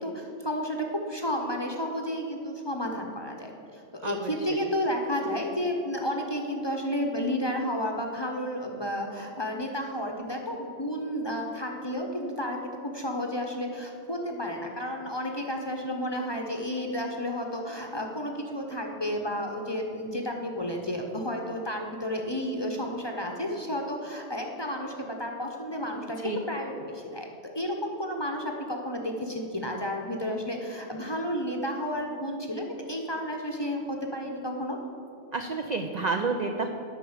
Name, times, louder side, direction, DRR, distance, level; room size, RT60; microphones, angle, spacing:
voice 1, 0.0-26.2 26.5-27.3 27.5-34.8, equal, 25° left, 2 dB, 0.7 m, -32 dB
voice 2, 4.0-4.7 26.2-26.4 35.3-36.7, right 4 dB, 55° right, 4 dB, 0.5 m, -30 dB
9.0 x 5.8 x 7.1 m, 2.6 s
omnidirectional pair, 1.3 m